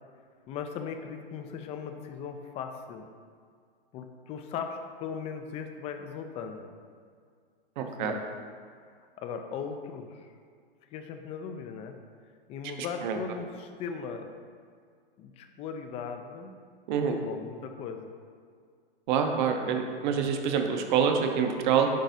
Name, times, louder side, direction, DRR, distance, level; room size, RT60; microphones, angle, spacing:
voice 1, 0.5-3.1 3.9-6.7 7.8-8.2 9.0-10.3 10.9-12.0 12.5-14.3 15.2-16.6 17.1-18.1 20.0-20.3 20.6-20.7, left 6 dB, 20° left, 6 dB, 0.4 m, -38 dB
voice 2, 7.8-8.1 13.0-13.2 16.9-17.1 19.1-21.9, right 7 dB, 50° right, 5 dB, 0.8 m, -26 dB
10.0 x 4.0 x 2.7 m, 2.1 s
hypercardioid pair, 110°, 30 cm